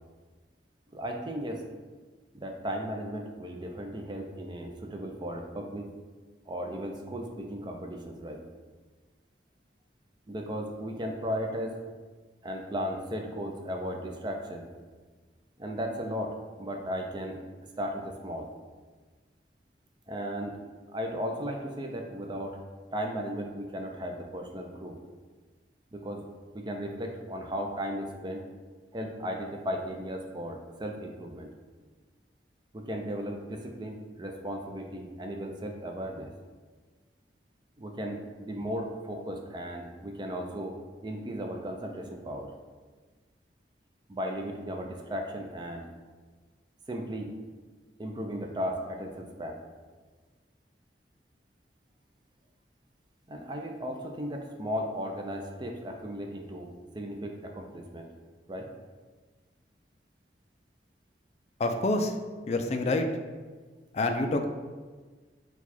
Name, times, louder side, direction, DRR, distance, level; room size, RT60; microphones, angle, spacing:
voice 1, 0.9-1.6 2.3-5.9 6.5-8.4 10.3-11.8 12.4-14.7 15.6-17.4 17.8-18.5 20.1-20.6 20.9-22.6 22.9-25.0 25.9-26.3 26.5-28.4 28.9-31.5 32.7-36.3 37.8-40.8 41.0-42.5 44.1-45.9 46.9-47.3 48.0-49.6 53.3-58.1 58.5-58.7, equal, 25° right, 3 dB, 0.4 m, -36 dB
voice 2, 61.6-62.2 62.5-63.1 63.9-64.5, left 2 dB, 40° left, 6 dB, 0.3 m, -27 dB
4.7 x 2.3 x 4.1 m, 1.4 s
head